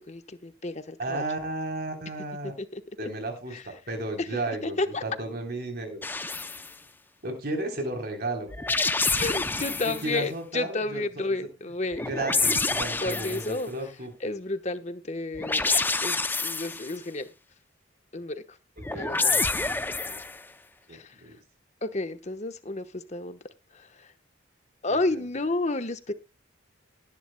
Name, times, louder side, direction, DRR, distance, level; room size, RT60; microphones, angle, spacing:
voice 1, 0.0-1.2 2.6-2.8 3.5-3.6 4.2-5.0 9.2-12.1 13.0-13.7 14.2-15.8 16.0-17.3 18.1-18.6 19.0-19.4 20.9-21.1 21.8-23.4 23.7-24.1 24.8-26.1, left 2 dB, 35° left, 10 dB, 1.0 m, -31 dB
voice 2, 1.0-2.5 3.0-6.0 7.2-8.5 10.0-11.4 12.0-14.3 18.8-20.2 20.9-21.4 24.9-25.2, right 2 dB, 50° right, 4 dB, 3.6 m, -34 dB
sound 1, 6.0-6.7 8.5-10.1 11.9-13.6 15.3-17.0 18.8-20.4, left 3 dB, 10° left, 0.5 m, -27 dB
19.0 x 10.5 x 2.2 m, 0.27 s
head